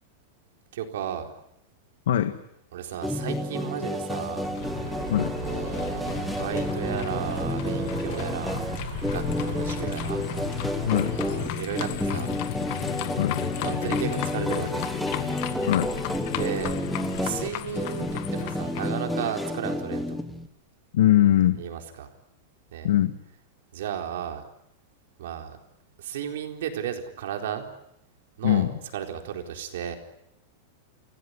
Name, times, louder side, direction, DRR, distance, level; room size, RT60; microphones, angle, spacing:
voice 1, 0.7-1.3 2.7-4.6 5.4-8.6 9.1-10.2 11.2-12.3 13.6-14.9 16.3-16.8 17.2-20.2 21.6-22.1 22.7-22.9 23.7-24.4 25.2-25.6 26.0-27.7 28.4-28.7 28.9-29.9, right 9 dB, 70° right, 4 dB, 4.1 m, -34 dB
sound 1, 3.0-20.5, equal, ahead, 1.4 m, -31 dB
sound 2, 4.4-18.9, left 13 dB, 40° left, 1.9 m, -34 dB
sound 3, 4.6-11.5, right 5 dB, 35° right, 6.5 m, -38 dB
voice 2, 10.8-11.2 13.2-13.4 15.7-15.9 20.9-21.6 22.8-23.1 28.4-28.7, left 12 dB, 80° left, 10 dB, 1.5 m, -21 dB
29.5 x 17.0 x 9.8 m, 0.83 s
supercardioid pair, 175°, 0 cm